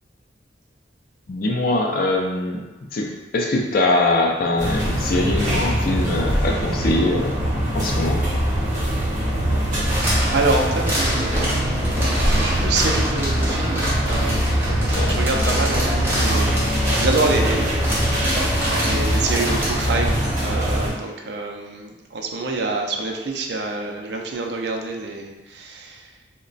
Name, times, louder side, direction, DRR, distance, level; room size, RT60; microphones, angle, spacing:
voice 1, 1.3-2.6 2.9-7.4 7.7-8.2 14.7-15.2, left 2 dB, 50° left, 0 dB, 0.4 m, -22 dB
sound 1, 4.6-20.9, equal, 40° right, 1.0 m, -22 dB
sound 2, 9.9-19.9, equal, 10° right, 0.8 m, -27 dB
voice 2, 10.3-16.6 17.0-18.6 18.8-26.1, right 3 dB, 60° right, 2 dB, 0.4 m, -27 dB
3.1 x 2.2 x 3.9 m, 1.1 s
head